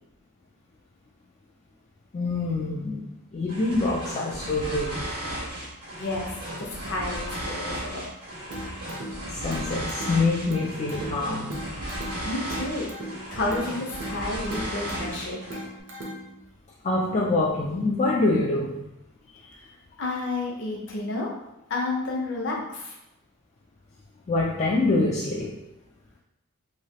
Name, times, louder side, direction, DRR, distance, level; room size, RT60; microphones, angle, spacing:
voice 1, 2.1-5.0 8.8-8.9 9.3-11.5 16.8-18.9 24.3-25.6, left 2 dB, 30° left, -4 dB, 0.3 m, -25 dB
sound 1, 3.5-15.7, right 1 dB, 90° right, 1.1 m, -35 dB
voice 2, 6.0-8.0 12.2-12.9 13.3-15.4 20.0-21.3 21.7-23.0, left 2 dB, 55° left, -2 dB, 0.8 m, -30 dB
sound 2, 8.5-16.5, equal, 55° right, 0.7 m, -39 dB
3.1 x 2.8 x 2.8 m, 0.86 s
head